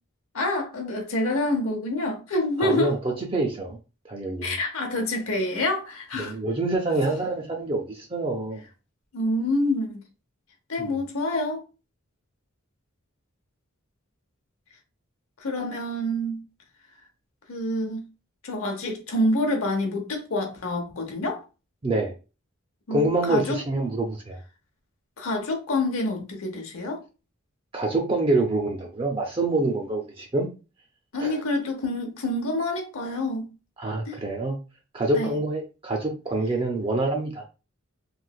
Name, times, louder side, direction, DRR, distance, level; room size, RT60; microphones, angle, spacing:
voice 1, 0.3-3.0 4.4-6.3 9.1-10.0 10.7-11.6 15.4-16.4 17.5-18.0 18.4-21.4 22.9-23.6 25.2-27.0 31.1-33.5 34.1-34.2 35.1-35.4, left 1 dB, 80° left, 0.8 m, -27 dB
voice 2, 2.6-3.8 4.0-4.5 6.2-8.6 10.8-11.0 21.8-22.1 22.9-24.4 27.7-30.5 31.2-31.4 33.8-34.6 34.9-37.4, right 2 dB, 25° right, 0.4 m, -26 dB
3.1 x 2.8 x 2.3 m
head